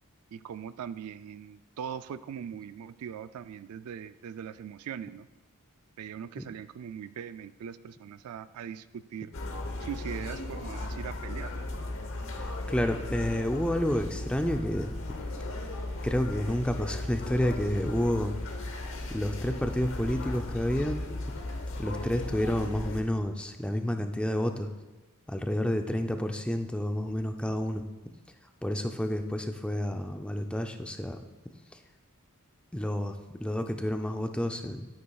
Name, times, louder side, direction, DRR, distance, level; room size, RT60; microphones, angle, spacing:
voice 1, 0.3-5.3 6.0-9.3 9.8-11.6, right 8 dB, 75° right, 14 dB, 0.3 m, -40 dB
sound 1, 9.3-23.0, left 2 dB, 60° left, 1.0 m, -36 dB
voice 2, 12.3-14.9 16.0-18.3 18.8-21.0 21.8-24.7 25.3-27.8 28.6-31.2 32.7-34.9, left 1 dB, 5° left, 5 dB, 0.4 m, -30 dB
11.5 x 9.5 x 2.3 m, 1.1 s
head